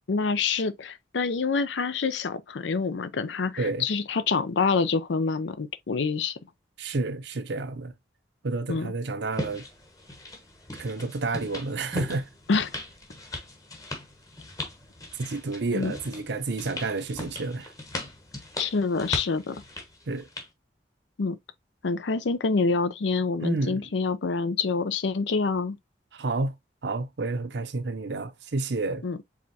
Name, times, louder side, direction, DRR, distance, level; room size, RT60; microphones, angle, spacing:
voice 1, 0.1-6.4 8.7-8.9 12.5-12.7 15.7-16.0 18.6-19.6 21.2-21.4 21.8-25.8 29.0-29.2, left 4 dB, 80° left, 0.5 m, -26 dB
voice 2, 6.8-7.9 8.4-9.6 10.8-12.3 15.2-17.7 20.1-20.3 23.4-23.8 26.1-26.5 26.8-29.0, right 3 dB, 70° right, 0.7 m, -30 dB
sound 1, 9.3-20.5, left 1 dB, 20° left, 1.0 m, -39 dB
4.8 x 3.5 x 2.7 m
head